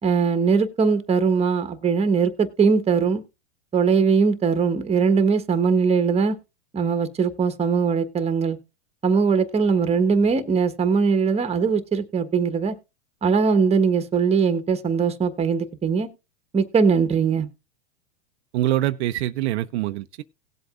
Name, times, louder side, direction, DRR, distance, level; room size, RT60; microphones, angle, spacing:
voice 1, 0.0-3.2 3.7-6.4 6.7-8.6 9.0-12.7 13.2-16.1 16.5-17.5, right 5 dB, 15° right, 1.2 m, -21 dB
voice 2, 18.5-20.2, right 14 dB, 65° right, 0.6 m, -24 dB
18.0 x 7.9 x 2.5 m
hypercardioid pair, 105°, 35 cm